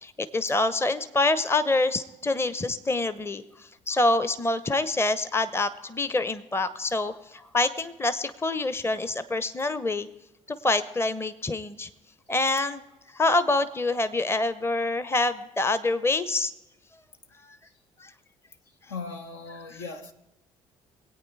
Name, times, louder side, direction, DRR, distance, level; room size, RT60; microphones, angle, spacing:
voice 1, 0.0-10.1 10.5-11.9 12.3-12.8 13.1-16.5 18.0-18.1 19.7-19.8, left 2 dB, 15° left, 0.7 m, -26 dB
voice 2, 18.9-20.1, left 4 dB, 70° left, 1.0 m, -38 dB
22.5 x 8.8 x 4.7 m
figure-of-eight pair, 45°, 17 cm